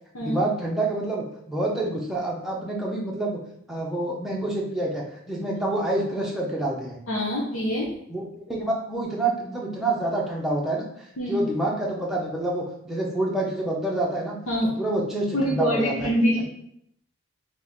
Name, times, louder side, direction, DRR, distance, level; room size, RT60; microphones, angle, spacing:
voice 1, 0.2-3.4 3.7-7.0 8.1-10.8 11.3-14.4 14.8-16.1, right 2 dB, ahead, -4 dB, 0.7 m, -27 dB
voice 2, 7.1-7.9 11.2-11.4 14.5-14.7 15.3-16.4, equal, 75° left, -4 dB, 0.9 m, -24 dB
4.1 x 3.0 x 3.5 m, 0.73 s
head